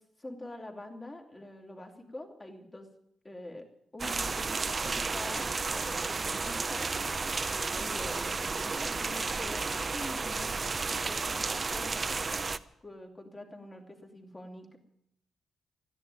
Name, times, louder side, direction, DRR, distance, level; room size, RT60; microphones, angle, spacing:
voice 1, 0.2-2.9 3.2-3.6 3.9-5.5 5.7-6.9 7.7-10.5 10.8-12.0 12.8-14.8, left 1 dB, 20° left, 2 dB, 3.0 m, -45 dB
sound 1, 4.0-12.6, right 4 dB, 30° right, 0.7 m, -32 dB
13.5 x 10.5 x 9.7 m, 0.74 s
cardioid pair, 115°, 0 cm